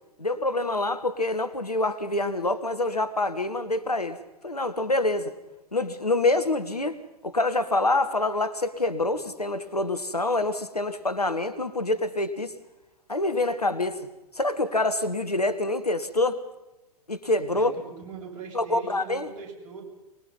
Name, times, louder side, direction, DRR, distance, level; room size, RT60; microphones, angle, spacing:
voice 1, 0.2-4.2 4.4-5.3 5.7-12.5 13.1-14.0 14.4-16.4 17.1-17.7 18.5-19.3, left 2 dB, 85° left, 10 dB, 1.6 m, -26 dB
voice 2, 17.5-19.8, right 5 dB, 55° right, 0 dB, 7.5 m, -41 dB
24.5 x 21.5 x 5.5 m, 0.98 s
figure-of-eight pair, 100°, 19 cm